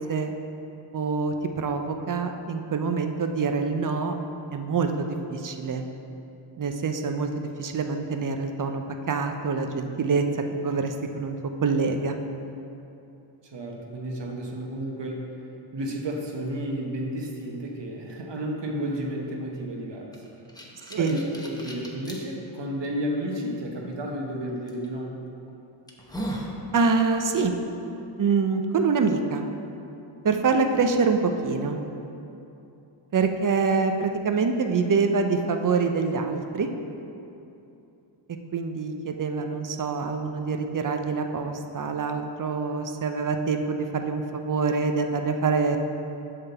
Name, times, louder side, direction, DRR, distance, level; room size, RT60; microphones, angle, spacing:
voice 1, 0.9-4.1 4.5-5.8 6.6-10.3 10.6-12.2 21.0-21.2 26.7-27.5 28.2-29.5 30.2-31.8 33.1-36.7 38.5-45.8, right 4 dB, 45° right, 5 dB, 0.6 m, -25 dB
voice 2, 13.4-15.2 15.7-20.3 20.9-25.2, equal, 60° right, 0 dB, 1.1 m, -32 dB
sound 1, 20.1-22.2 22.8-22.9 24.7-24.9 25.4-25.5 25.9-26.5, right 1 dB, 10° left, 0.8 m, -36 dB
8.1 x 3.7 x 6.7 m, 2.8 s
wide cardioid pair, 110°, 47 cm